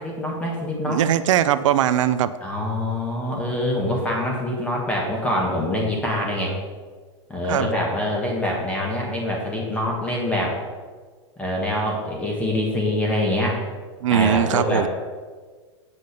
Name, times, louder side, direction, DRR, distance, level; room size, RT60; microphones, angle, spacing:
voice 1, 0.0-1.0 2.4-6.5 7.3-10.6 11.4-13.6 14.1-14.9, left 1 dB, 10° left, -1 dB, 1.6 m, -25 dB
voice 2, 0.9-2.3 7.5-7.7 14.0-14.9, right 10 dB, 80° right, 13 dB, 0.5 m, -20 dB
8.5 x 5.2 x 6.6 m, 1.5 s
supercardioid pair, 170°, 16 cm